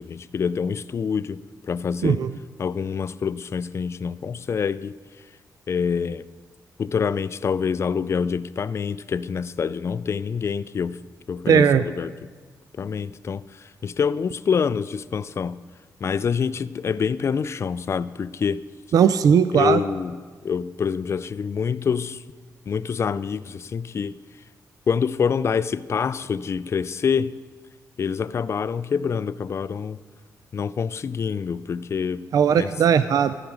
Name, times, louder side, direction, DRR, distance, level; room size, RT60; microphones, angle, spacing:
voice 1, 0.0-1.4 1.7-2.2 2.6-5.0 5.7-6.3 6.8-11.0 11.3-12.3 12.8-15.6 16.0-18.6 19.5-20.2 20.4-22.2 22.7-24.2 24.9-27.4 28.0-30.0 30.5-32.7, left 6 dB, 40° left, 0.3 m, -26 dB
voice 2, 11.5-11.8 18.9-19.8 32.3-33.3, right 7 dB, 65° right, 0.3 m, -18 dB
14.0 x 4.9 x 6.2 m
cardioid pair, 100°, 7 cm